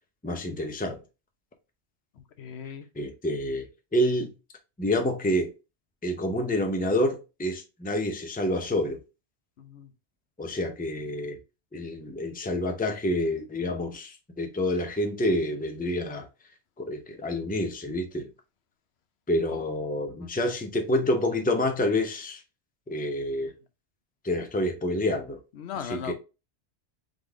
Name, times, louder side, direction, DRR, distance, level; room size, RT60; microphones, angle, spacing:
voice 1, 0.2-1.0 3.0-3.7 3.9-4.3 4.8-5.5 6.0-9.0 10.4-11.4 11.7-16.3 16.8-18.3 19.3-22.4 22.9-23.5 24.2-25.4 25.8-26.1, left 1 dB, 10° left, 0.6 m, -28 dB
voice 2, 2.2-2.9 9.6-9.9 19.5-19.6 20.1-20.3 25.6-26.1, left 7 dB, 75° left, 0.9 m, -38 dB
4.0 x 3.4 x 3.5 m
omnidirectional pair, 1.1 m